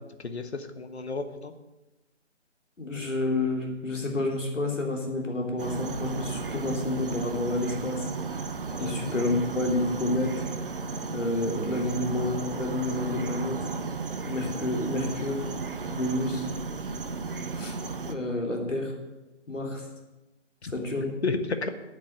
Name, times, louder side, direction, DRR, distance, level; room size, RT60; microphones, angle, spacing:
voice 1, 0.2-1.5 8.8-8.9 20.6-20.7 21.2-21.7, left 4 dB, 60° left, 9 dB, 1.4 m, -31 dB
voice 2, 2.8-8.5 8.8-10.8 11.1-13.7 14.3-15.5 15.8-16.5 17.6-17.7 18.0-18.9 19.5-19.8 20.7-21.2, left 2 dB, 85° left, 1 dB, 3.4 m, -29 dB
sound 1, 5.6-18.2, right 4 dB, 45° right, 0.8 m, -34 dB
9.2 x 7.5 x 8.9 m, 1.1 s
figure-of-eight pair, 165°, 36 cm